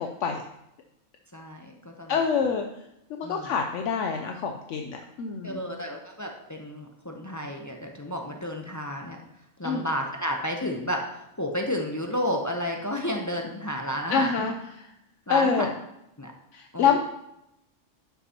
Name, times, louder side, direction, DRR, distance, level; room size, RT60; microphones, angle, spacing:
voice 1, 1.3-2.5 3.2-3.5 5.4-9.2 9.6-11.1 11.4-14.5 15.3-15.7 16.2-16.3 16.7-16.9, equal, 25° left, 2 dB, 0.3 m, -32 dB
voice 2, 2.1-2.6 3.1-5.6 9.6-9.8 14.1-14.5 15.3-15.7 16.8-17.0, left 6 dB, 70° left, 4 dB, 0.9 m, -25 dB
11.0 x 5.9 x 2.8 m, 0.85 s
omnidirectional pair, 1.4 m